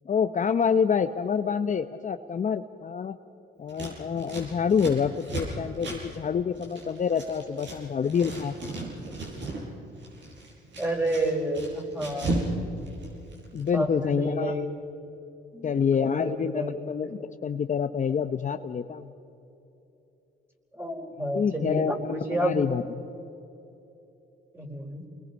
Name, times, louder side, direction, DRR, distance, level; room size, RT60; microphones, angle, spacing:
voice 1, 0.1-3.1 3.6-8.5 13.5-14.5 15.6-19.1 21.3-22.8, left 6 dB, 40° left, 8 dB, 0.8 m, -27 dB
Scissors, 3.7-7.8 8.0-9.6 9.9-12.5 12.8-13.7, right 2 dB, 65° right, 7.4 m, -35 dB
voice 2, 10.8-12.5 13.7-14.7 15.5-16.7 20.7-22.7 24.5-25.0, right 1 dB, 10° right, 1 dB, 4.5 m, -30 dB
28.5 x 21.5 x 5.4 m, 2.9 s
cardioid pair, 90°, 20 cm